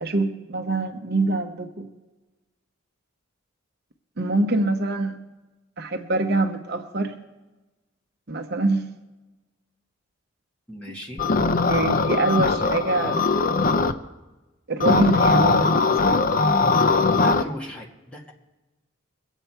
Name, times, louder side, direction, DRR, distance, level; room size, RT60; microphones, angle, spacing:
voice 1, 0.0-1.9 4.2-5.2 5.8-7.1 8.3-8.9 11.7-13.2 14.7-16.3, right 2 dB, 55° right, 5 dB, 0.9 m, -24 dB
voice 2, 10.7-11.2 17.1-18.3, equal, 5° left, -4 dB, 2.1 m, -37 dB
sound 1, 11.2-13.9 14.8-17.4, left 3 dB, 45° left, 0.6 m, -20 dB
23.0 x 8.3 x 4.5 m, 1.1 s
head